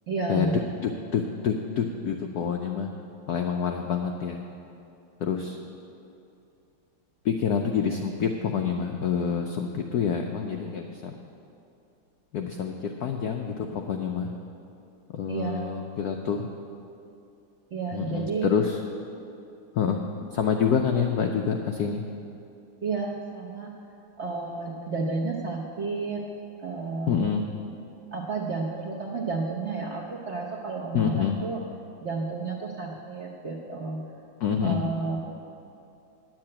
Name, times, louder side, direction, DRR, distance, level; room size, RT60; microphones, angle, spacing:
voice 1, 0.1-0.5 15.3-15.6 17.7-18.5 22.8-23.7 24.2-26.2 26.6-27.2 28.1-31.6 32.0-34.0 34.6-35.2, right 4 dB, 50° right, -2 dB, 0.8 m, -31 dB
voice 2, 0.8-2.9 3.3-4.4 5.2-5.6 7.2-11.2 12.3-14.3 15.1-16.5 17.9-18.8 19.7-22.0 27.1-27.5 30.9-31.4 34.4-34.9, left 7 dB, 80° left, 3 dB, 0.8 m, -27 dB
9.5 x 7.6 x 8.7 m, 2.6 s
omnidirectional pair, 2.3 m